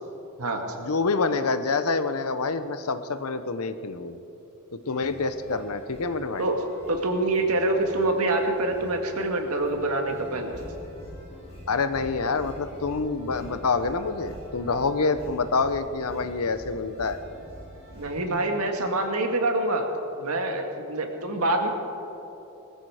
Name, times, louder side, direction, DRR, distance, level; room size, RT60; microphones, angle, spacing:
voice 1, 0.8-4.2 4.7-6.4 11.7-17.2, left 4 dB, 85° left, 11 dB, 0.9 m, -27 dB
sound 1, 4.8-18.2, equal, 30° left, 4.1 m, -45 dB
voice 2, 6.9-10.5 17.9-19.9 20.2-21.7, right 2 dB, 90° right, 4 dB, 1.9 m, -26 dB
20.0 x 13.5 x 4.9 m, 3.0 s
head